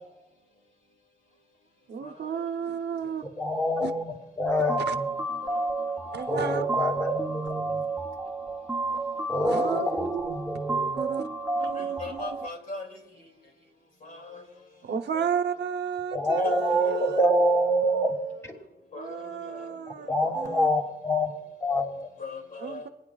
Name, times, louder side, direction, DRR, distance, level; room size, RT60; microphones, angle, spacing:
voice 1, 1.9-3.2 3.8-3.9 4.9-5.0 6.1-6.6 9.4-9.9 10.9-11.3 11.6-12.4 14.8-17.2 18.9-20.7 22.6-22.9, right 7 dB, 80° right, 7 dB, 0.8 m, -33 dB
voice 2, 3.2-5.1 6.3-7.8 9.3-11.0 16.1-18.2 18.4-18.5 20.1-21.3 21.6-22.1, equal, 15° left, 2 dB, 2.4 m, -26 dB
sound 1, 4.5-12.5, right 3 dB, 5° right, 0.8 m, -31 dB
voice 3, 11.8-12.9 14.0-14.4 15.1-15.3 16.4-17.2 18.9-19.7 22.2-22.8, left 3 dB, 55° left, 2 dB, 2.5 m, -39 dB
27.5 x 9.6 x 2.4 m, 1.1 s
cardioid pair, 75°, 17 cm